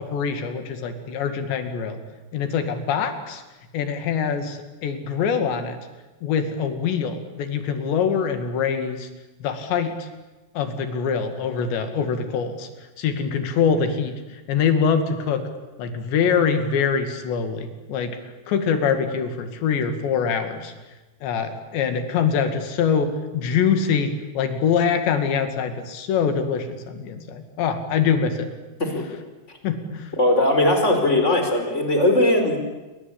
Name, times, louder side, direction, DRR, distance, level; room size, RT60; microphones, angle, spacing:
voice 1, 0.0-2.0 2.3-3.4 3.7-5.8 6.2-9.1 9.4-10.1 10.6-12.7 13.0-15.4 15.8-18.2 18.5-20.7 21.2-28.5 29.6-30.1, left 6 dB, 70° left, 7 dB, 4.5 m, -24 dB
voice 2, 30.2-32.6, left 1 dB, 15° left, 5 dB, 4.5 m, -19 dB
28.5 x 23.5 x 8.8 m, 1.1 s
omnidirectional pair, 5.4 m